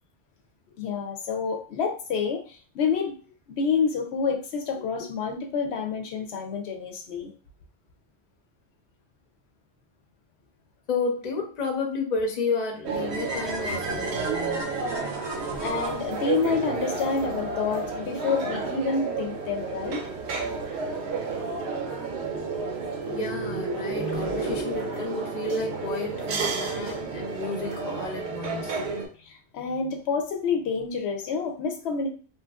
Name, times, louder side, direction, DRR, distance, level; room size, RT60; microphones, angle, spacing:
voice 1, 0.8-3.2 3.5-7.3 15.6-20.1 22.7-23.2 23.5-23.6 29.2-32.1, left 5 dB, 80° left, 4 dB, 0.8 m, -28 dB
voice 2, 10.9-14.7 23.1-28.8, left 4 dB, 45° left, 1 dB, 0.7 m, -31 dB
sound 1, 12.8-29.1, right 4 dB, 80° right, 0.9 m, -31 dB
sound 2, 13.1-17.2, right 2 dB, 35° right, 0.4 m, -36 dB
2.9 x 2.5 x 2.3 m, 0.38 s
omnidirectional pair, 1.1 m